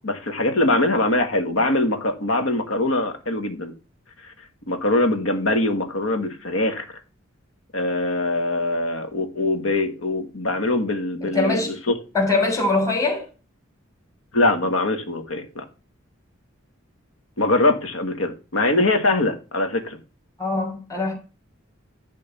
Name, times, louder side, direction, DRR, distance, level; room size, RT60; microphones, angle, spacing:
voice 1, 0.0-3.7 4.7-6.9 7.7-11.9 14.3-15.6 17.4-20.0, left 2 dB, 80° left, 1.7 m, -22 dB
voice 2, 11.2-11.8 12.1-13.3 20.4-21.1, left 3 dB, 15° left, 3.0 m, -22 dB
11.0 x 3.8 x 6.8 m
head